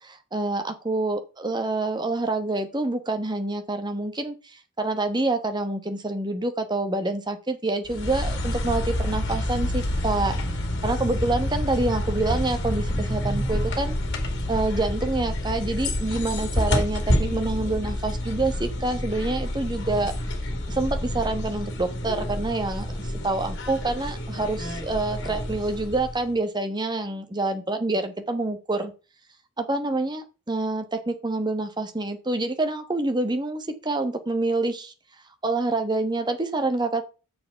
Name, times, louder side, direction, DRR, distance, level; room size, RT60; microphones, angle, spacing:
voice 1, 0.0-4.3 4.8-10.4 10.8-14.0 14.5-20.1 20.7-28.9 29.6-34.9 35.4-37.0, right 2 dB, 20° right, 7 dB, 1.2 m, -27 dB
sound 1, 7.9-26.3, left 1 dB, 50° left, 2.2 m, -28 dB
7.0 x 6.4 x 5.5 m, 0.32 s
head